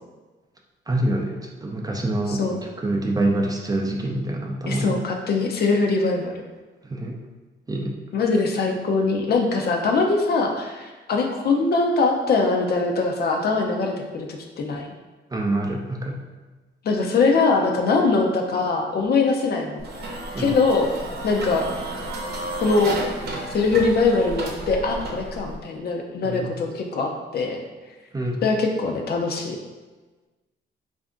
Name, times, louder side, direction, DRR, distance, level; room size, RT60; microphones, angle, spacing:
voice 1, 0.9-2.4 2.8-5.0 6.8-7.2 7.7-7.9 15.3-16.2 20.3-20.6 26.2-26.6 28.1-28.4, right 1 dB, 20° right, 1 dB, 0.5 m, -26 dB
voice 2, 4.7-6.4 8.1-14.9 16.8-19.8 20.4-20.9 21.2-21.7 22.6-23.0 23.5-27.6 28.4-29.6, left 3 dB, 55° left, 2 dB, 0.6 m, -22 dB
sound 1, 19.8-25.6, right 1 dB, 55° right, 0.8 m, -32 dB
3.3 x 2.6 x 3.6 m, 1.3 s
cardioid pair, 90°, 20 cm